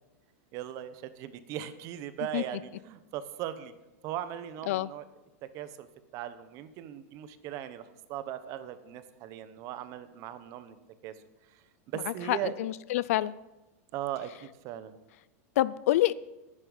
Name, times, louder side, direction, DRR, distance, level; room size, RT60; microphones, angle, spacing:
voice 1, 0.5-3.7 4.0-5.0 5.4-5.9 6.1-10.8 11.0-11.1 11.5-12.5 13.9-14.9, right 11 dB, 40° right, 12 dB, 1.0 m, -38 dB
voice 2, 12.1-13.3 15.6-16.1, left 15 dB, 65° left, 19 dB, 0.5 m, -27 dB
11.0 x 9.9 x 5.5 m, 1.0 s
supercardioid pair, 140°, 8 cm